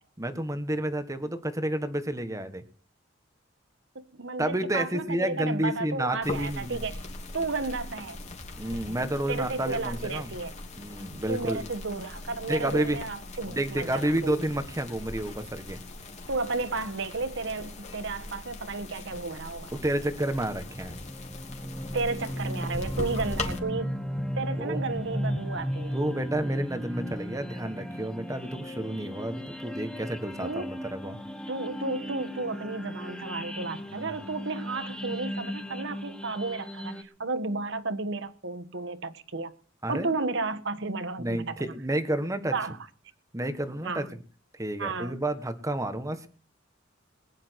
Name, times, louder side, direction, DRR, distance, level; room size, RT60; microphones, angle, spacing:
voice 1, 0.2-2.6 4.4-6.8 8.6-10.3 10.8-11.6 12.5-13.0 13.5-15.8 19.7-21.0 24.6-24.8 25.9-31.2 33.9-34.3 39.8-40.1 41.2-42.5 43.3-44.1 44.5-46.3, right 1 dB, 15° right, 1.5 m, -30 dB
voice 2, 3.9-7.0 7.3-8.2 9.3-10.5 11.3-14.3 16.3-19.7 21.9-24.0 24.4-26.0 30.4-30.7 31.5-39.5 39.9-41.7 42.5-42.8 43.8-44.1 44.8-45.2, right 3 dB, 65° right, 1.3 m, -33 dB
sound 1, 6.2-23.6, left 2 dB, 35° left, 2.9 m, -40 dB
sound 2, 20.3-37.0, equal, 5° left, 1.2 m, -36 dB
20.5 x 10.5 x 4.7 m
head